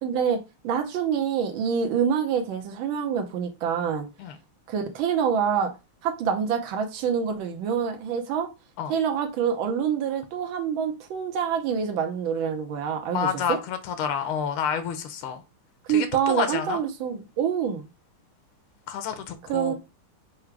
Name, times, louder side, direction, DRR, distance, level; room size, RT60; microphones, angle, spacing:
voice 1, 0.0-4.1 4.7-5.7 6.0-8.5 8.9-13.6 15.9-17.9 19.5-19.7, right 7 dB, 75° right, 1.5 m, -26 dB
voice 2, 13.1-15.4 15.9-16.8 18.9-19.7, left 7 dB, 85° left, 1.6 m, -29 dB
4.8 x 2.2 x 4.5 m
omnidirectional pair, 2.3 m